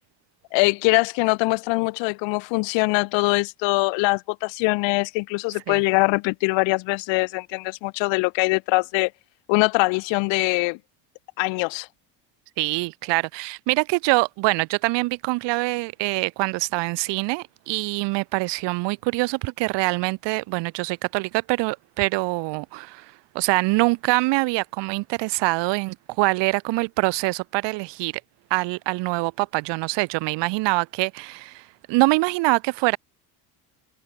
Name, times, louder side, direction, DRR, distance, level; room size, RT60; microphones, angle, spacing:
voice 1, 0.5-9.1 9.5-10.8 11.4-11.9, left 27 dB, 75° left, 4.7 m, -22 dB
voice 2, 12.6-28.1 28.5-33.0, right 24 dB, 65° right, 2.7 m, -24 dB
cardioid pair, 165°, 45 cm